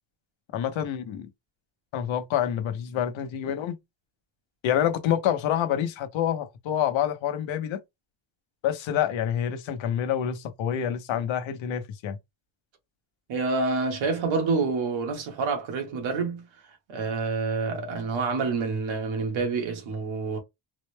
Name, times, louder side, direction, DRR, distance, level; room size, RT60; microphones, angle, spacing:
voice 1, 0.5-1.3 1.9-3.8 4.6-7.8 8.6-12.2, left 9 dB, 80° left, 0.9 m, -27 dB
voice 2, 13.3-16.4 16.9-20.4, right 4 dB, 85° right, 1.5 m, -27 dB
3.9 x 2.1 x 3.2 m
cardioid pair, 175°, 46 cm